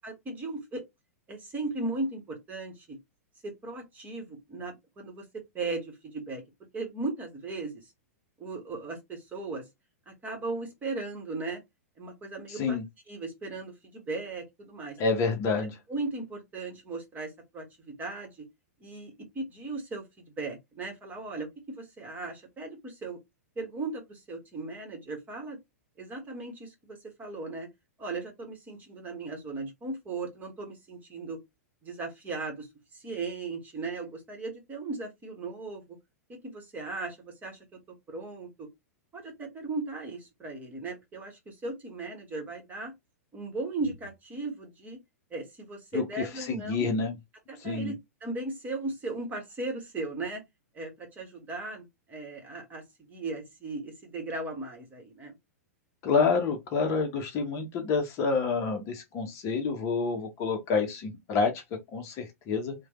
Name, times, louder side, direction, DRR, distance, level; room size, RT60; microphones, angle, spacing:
voice 1, 0.0-0.8 1.3-3.0 3.4-5.3 5.5-6.4 6.7-7.9 8.4-9.7 10.1-11.6 12.0-12.8 13.1-15.0 15.9-18.5 18.8-23.2 23.5-25.6 26.0-27.7 28.0-31.4 31.8-32.7 32.9-36.0 36.3-37.6 38.1-38.7 39.1-42.9 43.3-45.0 45.3-46.9 47.5-47.9 48.2-50.4 50.7-55.3, right 3 dB, 20° right, 1.2 m, -37 dB
voice 2, 15.0-15.8 45.9-46.0 46.5-47.1 47.6-47.9 56.0-61.5 61.9-62.7, left 4 dB, 35° left, 0.8 m, -28 dB
3.2 x 2.2 x 2.9 m
figure-of-eight pair, 105°, 8 cm